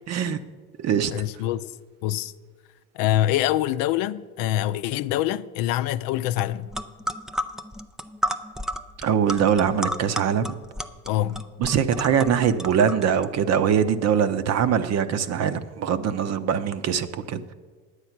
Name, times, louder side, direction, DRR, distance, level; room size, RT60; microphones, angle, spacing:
voice 1, 0.1-0.4 0.8-1.1 9.0-10.5 11.6-17.5, right 8 dB, 45° right, 0.7 m, -22 dB
voice 2, 1.1-1.7 2.0-2.3 2.9-6.7 11.1-11.4, left 13 dB, 65° left, 0.5 m, -25 dB
sound 1, 6.4-6.5 6.7-13.3, equal, ahead, 0.3 m, -32 dB
10.0 x 8.2 x 5.9 m
supercardioid pair, 100°, 37 cm